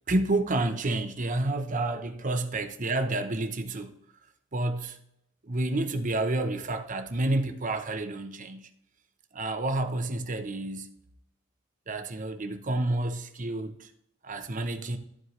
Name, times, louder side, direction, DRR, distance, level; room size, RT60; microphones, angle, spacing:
voice 1, 0.1-4.0 4.5-5.0 5.4-8.7 9.3-10.9 11.9-13.9 14.2-15.0, right 2 dB, 40° right, 0.9 m, -29 dB
13.5 x 4.6 x 3.2 m
head